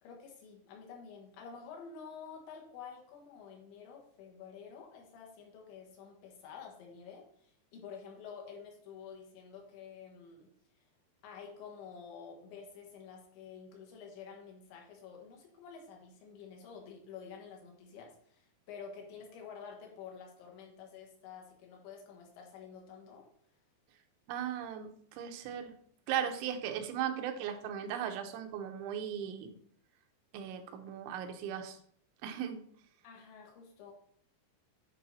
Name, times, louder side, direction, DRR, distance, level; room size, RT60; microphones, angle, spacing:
voice 1, 0.0-10.5 11.2-23.3 26.2-26.3 33.0-33.9, left 6 dB, 80° left, 1 dB, 3.8 m, -50 dB
voice 2, 24.3-25.7 26.1-29.5 30.3-31.8 32.2-32.6, right 9 dB, 85° right, 6 dB, 3.2 m, -37 dB
9.9 x 4.8 x 4.1 m, 0.63 s
omnidirectional pair, 5.2 m